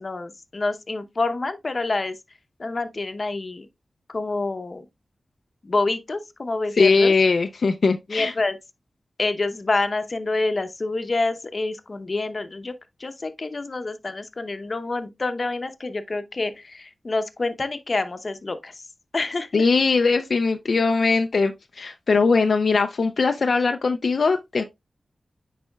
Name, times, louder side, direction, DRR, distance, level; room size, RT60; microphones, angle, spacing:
voice 1, 0.0-2.2 2.6-3.7 4.1-4.8 5.6-7.1 8.1-8.6 9.2-12.7 13.0-18.7 19.1-19.5, left 3 dB, 50° left, 0.8 m, -27 dB
voice 2, 6.7-8.3 19.5-24.6, left 4 dB, 75° left, 0.5 m, -20 dB
9.9 x 4.1 x 2.3 m
wide cardioid pair, 80°, 0 cm